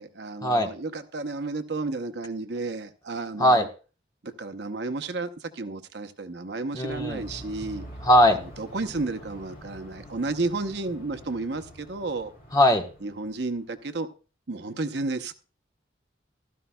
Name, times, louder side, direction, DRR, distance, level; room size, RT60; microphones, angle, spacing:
voice 1, 0.0-3.7 4.2-7.8 8.6-12.3 13.0-14.1 14.5-15.3, right 3 dB, 65° right, 9 dB, 0.8 m, -32 dB
voice 2, 6.7-7.2 8.0-8.4 12.5-12.8, left 1 dB, 20° left, 3 dB, 1.2 m, -19 dB
sound 1, 6.8-13.7, equal, 45° left, 2.4 m, -45 dB
15.5 x 13.0 x 2.3 m, 0.35 s
head